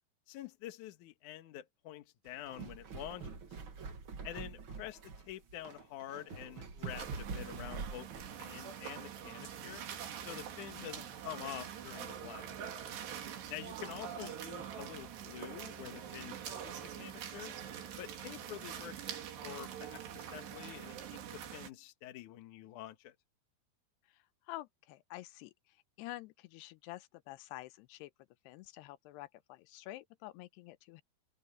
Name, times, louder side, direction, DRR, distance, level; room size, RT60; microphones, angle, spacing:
voice 1, 0.3-3.6 4.2-8.1 8.4-9.8 10.2-12.5 13.5-17.5 18.0-23.2, left 13 dB, 60° left, 2.3 m, -47 dB
sound 1, 2.3-8.3, right 5 dB, 45° right, 1.7 m, -45 dB
sound 2, 6.9-21.7, right 9 dB, 90° right, 4.6 m, -45 dB
voice 2, 24.5-28.1 28.5-31.0, left 17 dB, 85° left, 2.7 m, -48 dB
open air
omnidirectional pair, 4.7 m